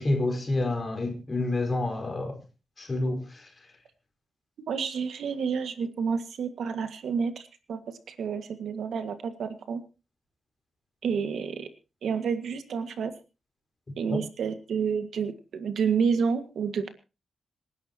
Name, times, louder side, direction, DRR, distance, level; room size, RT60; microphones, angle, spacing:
voice 1, 0.0-2.4 2.8-3.5 14.1-14.2, left 2 dB, 25° left, 4.9 m, -28 dB
voice 2, 4.7-7.8 8.1-9.8 11.0-11.7 12.0-13.1 14.0-16.9, right 6 dB, 80° right, 1.8 m, -29 dB
27.5 x 11.0 x 2.9 m
wide cardioid pair, 170°, 0 cm